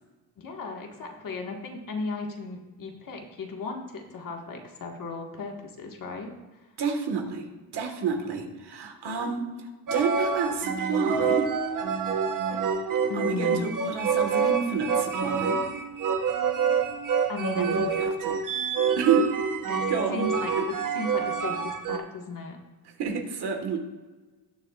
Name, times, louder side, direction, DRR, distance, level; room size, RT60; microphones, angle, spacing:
voice 1, 0.4-6.6 13.1-13.7 17.3-18.1 19.7-19.8 20.1-22.6, left 3 dB, 50° left, 2 dB, 1.8 m, -36 dB
voice 2, 6.8-7.5 7.7-9.5 9.9-11.4 13.1-15.6 17.6-18.4 19.0-19.3 19.9-20.2 20.6-20.7 23.0-23.8, right 5 dB, 70° right, 4 dB, 1.7 m, -29 dB
sound 1, 9.9-22.0, right 6 dB, 50° right, 1.1 m, -27 dB
19.0 x 6.6 x 2.5 m, 1.2 s
cardioid pair, 110°, 42 cm